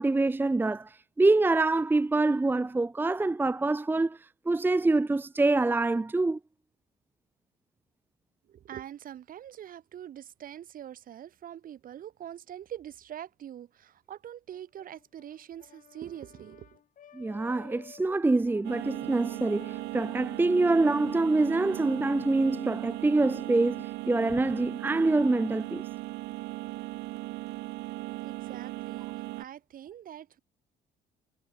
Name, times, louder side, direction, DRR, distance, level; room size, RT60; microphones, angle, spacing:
voice 1, 0.0-6.4 17.1-25.8, right 2 dB, 10° right, 0.7 m, -25 dB
voice 2, 8.5-16.7 28.2-29.1 29.4-30.4, right 10 dB, 55° right, 4.7 m, -44 dB
Brass instrument, 14.5-20.0, left 9 dB, 50° left, 3.5 m, -54 dB
sound 1, 18.6-29.4, right 20 dB, 80° right, 0.4 m, -37 dB
cardioid pair, 110°, 17 cm